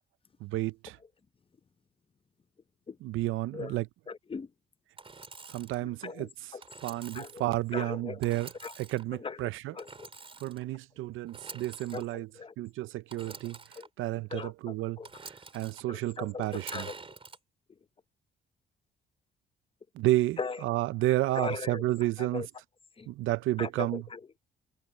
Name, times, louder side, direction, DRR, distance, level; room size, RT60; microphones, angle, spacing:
voice 1, 0.4-1.0 3.0-3.8 5.5-6.3 6.8-8.5 8.9-9.7 10.4-12.3 12.6-13.6 14.0-15.0 15.5-16.9 20.0-20.4 20.6-22.4 23.1-24.0, right 16 dB, 85° right, 0.7 m, -31 dB
voice 2, 4.1-4.5 5.8-6.6 7.1-8.2 8.6-8.8 9.1-10.1 11.9-12.5 13.5-13.9 14.3-15.1 15.9-17.0 20.4-20.7 21.3-21.8 22.2-22.5 23.0-23.1 23.6-24.3, left 5 dB, 25° left, 0.9 m, -39 dB
Engine / Sawing, 5.0-5.8 6.6-7.4 8.2-9.0 9.8-10.6 11.3-12.0 13.1-13.9 15.0-15.8 16.4-17.4, right 4 dB, 25° right, 3.8 m, -47 dB
cardioid pair, 90°, 20 cm